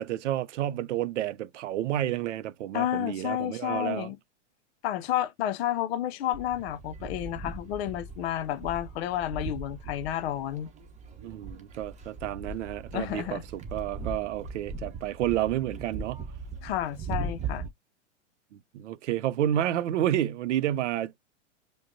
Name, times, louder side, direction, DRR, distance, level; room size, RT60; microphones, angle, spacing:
voice 1, 0.0-4.1 11.2-16.2 18.5-21.2, right 12 dB, 70° right, 0.6 m, -30 dB
voice 2, 2.7-4.2 4.8-10.7 12.9-13.4 16.6-17.7, left 12 dB, 55° left, 0.6 m, -31 dB
sound 1, 6.3-17.7, right 3 dB, 20° right, 1.0 m, -39 dB
5.0 x 2.2 x 2.6 m
hypercardioid pair, 115°, 37 cm